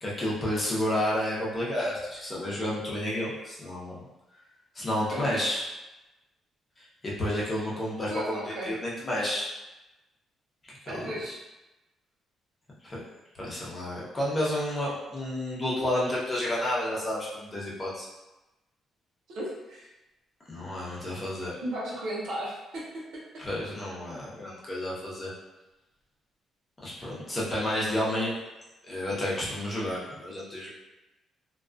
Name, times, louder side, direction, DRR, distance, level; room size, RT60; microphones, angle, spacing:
voice 1, 0.0-4.0 4.7-5.6 6.8-9.5 10.6-11.3 12.8-13.0 13.4-18.1 20.5-21.6 23.4-25.3 26.8-28.4 28.8-30.7, left 1 dB, 30° left, -6 dB, 0.8 m, -31 dB
voice 2, 5.1-5.4 8.1-8.7 10.9-11.4 19.3-19.9 21.6-23.4, right 1 dB, 75° right, -4 dB, 0.7 m, -35 dB
2.3 x 2.2 x 2.4 m, 1.0 s
cardioid pair, 90°, 0 cm